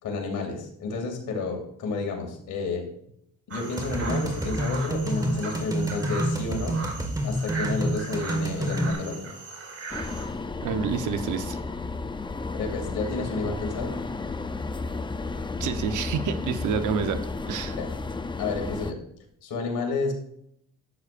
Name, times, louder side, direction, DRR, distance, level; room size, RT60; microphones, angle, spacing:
voice 1, 0.0-2.8 3.5-6.8 7.2-9.3 12.5-13.9 17.8-17.9 18.4-19.0 19.4-20.1, left 3 dB, 75° left, 1 dB, 2.6 m, -30 dB
sound 1, 3.5-10.3, right 3 dB, 55° right, 2.8 m, -38 dB
sound 2, 3.8-8.9, right 1 dB, 10° right, 1.7 m, -28 dB
sound 3, 9.9-18.9, left 3 dB, 15° left, 0.6 m, -33 dB
voice 2, 10.6-11.6 15.6-17.8, right 6 dB, 80° right, 9 dB, 1.0 m, -28 dB
11.5 x 8.2 x 2.6 m, 0.72 s
cardioid pair, 90°, 30 cm